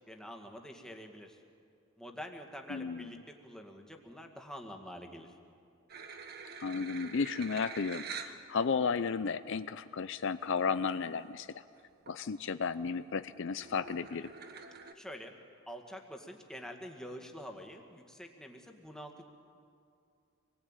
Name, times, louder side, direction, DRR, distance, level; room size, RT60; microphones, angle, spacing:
voice 1, 0.1-1.4 2.0-5.3 15.0-15.4 15.7-19.2, equal, 5° left, 3 dB, 1.9 m, -46 dB
voice 2, 2.7-3.1 6.6-11.5 12.1-14.3, left 5 dB, 60° left, 12 dB, 0.5 m, -33 dB
sound 1, 5.9-8.4 9.1-9.2 10.6-10.7 10.9-11.3 11.7-12.2 12.6-14.9, right 5 dB, 50° right, 1.5 m, -46 dB
26.5 x 20.0 x 9.0 m, 2.4 s
head